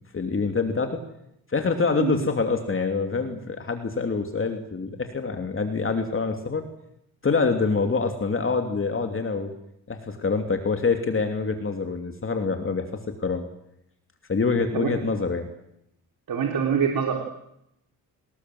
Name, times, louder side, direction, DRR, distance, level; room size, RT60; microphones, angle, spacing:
voice 1, 0.1-1.0 1.5-6.6 7.2-9.5 9.9-12.9 13.2-13.5 14.3-15.5, left 4 dB, 35° left, 5 dB, 2.9 m, -25 dB
voice 2, 16.3-17.2, right 7 dB, 65° right, 2 dB, 3.8 m, -24 dB
29.0 x 19.5 x 7.9 m, 0.79 s
cardioid pair, 95°, 38 cm